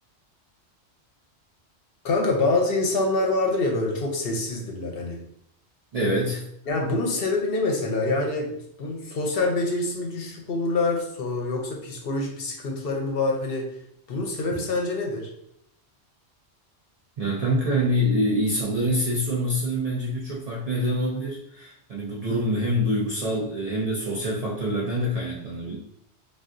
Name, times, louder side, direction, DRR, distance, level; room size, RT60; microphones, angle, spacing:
voice 1, 2.0-5.2 6.7-13.7 14.1-15.3, left 2 dB, 65° left, 0 dB, 0.8 m, -26 dB
voice 2, 5.9-6.4 17.2-25.8, equal, 50° right, -4 dB, 0.4 m, -25 dB
3.5 x 2.3 x 2.5 m, 0.72 s
omnidirectional pair, 1.1 m